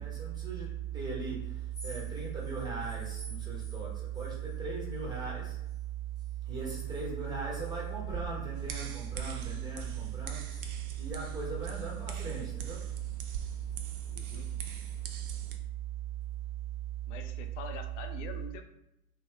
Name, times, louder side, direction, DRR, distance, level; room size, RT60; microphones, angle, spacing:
voice 1, 0.0-5.6 6.4-12.9, right 6 dB, 10° right, -4 dB, 1.0 m, -36 dB
sound 1, 1.6-5.9 6.2-8.7 9.1-11.5 11.8-15.3, equal, 10° left, 0.5 m, -56 dB
sound 2, 8.6-15.6, right 6 dB, 40° right, 0.4 m, -44 dB
voice 2, 14.1-14.5 17.1-18.6, left 6 dB, 55° left, 7 dB, 0.5 m, -44 dB
2.9 x 2.1 x 3.2 m, 0.84 s
figure-of-eight pair, 95°, 42 cm